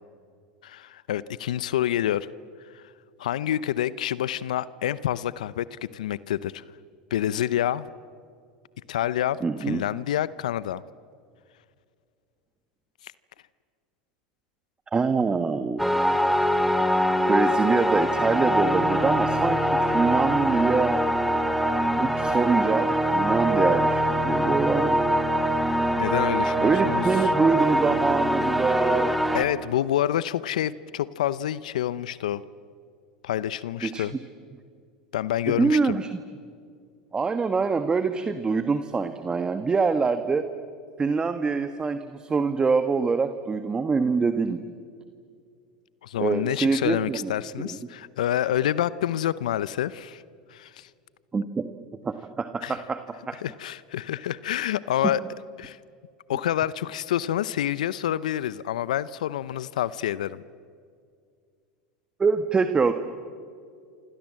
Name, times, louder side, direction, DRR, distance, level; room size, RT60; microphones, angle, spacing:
voice 1, 0.6-2.3 2.7-2.8 3.2-6.6 7.1-7.9 8.9-10.8 26.0-27.3 29.3-32.4 33.2-34.1 35.1-36.0 46.0-50.2 50.5-50.9 52.6-52.8 53.4-55.2 55.6-55.8 56.3-60.4, left 11 dB, 80° left, 18 dB, 0.7 m, -28 dB
voice 2, 9.4-9.8 14.9-15.8 17.3-21.0 22.0-25.0 26.6-29.1 33.8-34.0 35.6-36.1 37.1-40.4 41.0-44.6 46.2-47.3 51.3-51.7 52.0-53.0 53.3-53.4 62.2-62.9, right 4 dB, 20° right, 9 dB, 1.4 m, -24 dB
sound 1, 15.8-29.4, equal, ahead, 2.2 m, -23 dB
29.0 x 26.0 x 7.6 m, 2.2 s
hypercardioid pair, 90°, 4 cm